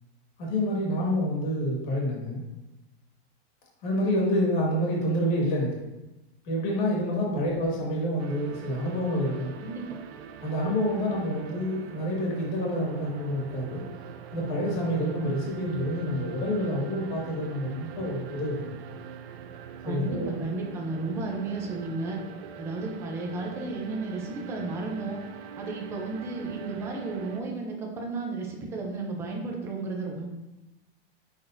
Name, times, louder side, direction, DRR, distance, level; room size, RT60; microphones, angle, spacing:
voice 1, 0.4-2.4 3.8-5.8 6.4-9.5 10.4-13.8 14.3-18.8 19.8-20.3, equal, 50° left, -3 dB, 2.0 m, -28 dB
sound 1, 8.2-27.4, right 7 dB, 80° right, 0.6 m, -43 dB
voice 2, 19.8-22.2 22.6-25.2 25.6-30.3, right 3 dB, 10° right, 0 dB, 0.4 m, -33 dB
10.5 x 4.0 x 2.5 m, 1.0 s
supercardioid pair, 170°, 31 cm